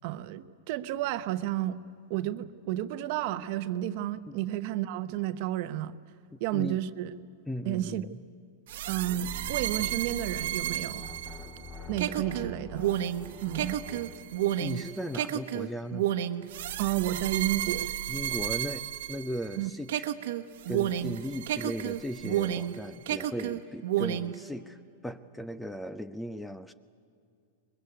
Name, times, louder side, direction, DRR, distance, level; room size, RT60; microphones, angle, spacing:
voice 1, 0.0-1.8 2.1-6.0 6.4-7.1 7.6-8.1 8.9-11.1 11.9-12.9 13.4-13.8 16.8-17.9 19.6-19.7, right 13 dB, 50° right, 12 dB, 0.9 m, -31 dB
voice 2, 6.3-6.8 7.5-8.2 14.6-16.1 18.1-20.1 20.7-26.7, equal, 5° left, 14 dB, 0.5 m, -37 dB
sound 1, 8.7-19.6 19.9-22.8 23.1-24.4, right 12 dB, 65° right, 1.2 m, -31 dB
sound 2, 8.9-14.2, left 3 dB, 20° left, 2.0 m, -45 dB
23.0 x 22.0 x 9.5 m, 2.4 s
supercardioid pair, 155°, 0 cm